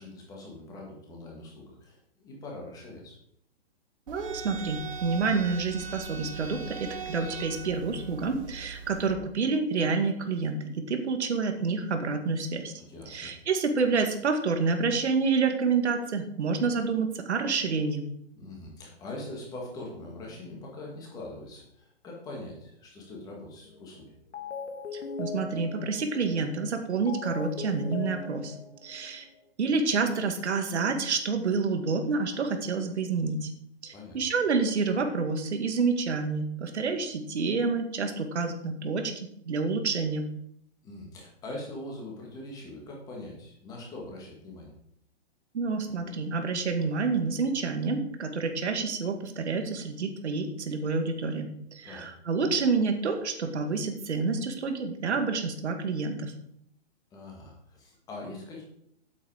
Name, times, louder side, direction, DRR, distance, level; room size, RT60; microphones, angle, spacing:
voice 1, 0.0-3.2 12.8-13.3 18.4-24.2 33.9-34.2 40.8-44.7 51.8-52.1 57.1-58.6, left 2 dB, 10° left, -1 dB, 1.9 m, -42 dB
sound 1, 4.1-9.1, right 6 dB, 30° right, 1.3 m, -40 dB
voice 2, 4.1-12.7 13.1-18.0 24.9-28.6 28.8-29.3 29.6-33.5 33.8-40.3 45.5-56.3, right 4 dB, 80° right, 5 dB, 2.0 m, -28 dB
sound 2, 23.7-24.0 24.3-29.5, left 4 dB, 85° left, 2.0 m, -40 dB
8.4 x 8.2 x 4.9 m, 0.71 s
hypercardioid pair, 170°, 33 cm